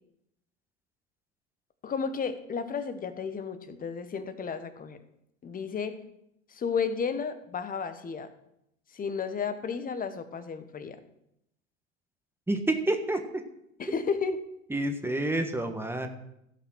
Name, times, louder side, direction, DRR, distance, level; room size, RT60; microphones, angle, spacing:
voice 1, 1.8-5.0 5.4-6.0 6.5-8.3 8.9-11.0 13.8-14.4, left 6 dB, 20° left, 11 dB, 1.2 m, -32 dB
voice 2, 12.5-13.4 14.7-16.1, right 1 dB, 5° right, 6 dB, 1.4 m, -28 dB
15.5 x 5.7 x 6.3 m, 0.80 s
hypercardioid pair, 85°, 38 cm